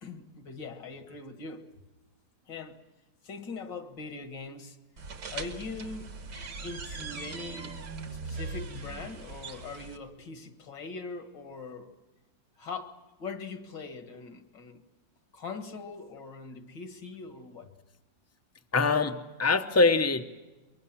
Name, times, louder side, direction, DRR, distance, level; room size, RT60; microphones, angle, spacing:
voice 1, 0.0-1.7 2.5-2.8 3.2-4.8 5.3-6.1 6.6-11.9 12.6-14.8 15.3-17.7, left 4 dB, 70° left, 2.3 m, -41 dB
sound 1, 5.0-10.0, right 3 dB, 65° right, 2.3 m, -40 dB
voice 2, 18.7-20.2, left 4 dB, 15° left, 0.6 m, -24 dB
23.5 x 23.5 x 7.5 m
omnidirectional pair, 2.0 m